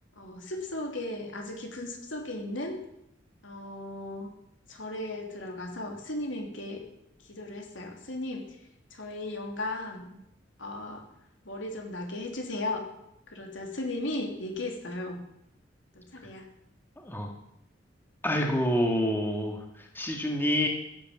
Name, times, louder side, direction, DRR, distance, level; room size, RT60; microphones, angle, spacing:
voice 1, 0.1-2.8 3.4-4.3 4.7-6.8 7.3-8.6 8.9-10.2 10.6-11.0 11.4-12.9 13.3-15.2 15.9-16.5, left 2 dB, 75° left, 2 dB, 3.3 m, -36 dB
voice 2, 17.0-17.3 18.2-20.7, equal, 10° left, 1 dB, 2.2 m, -27 dB
16.0 x 8.9 x 7.5 m, 0.79 s
head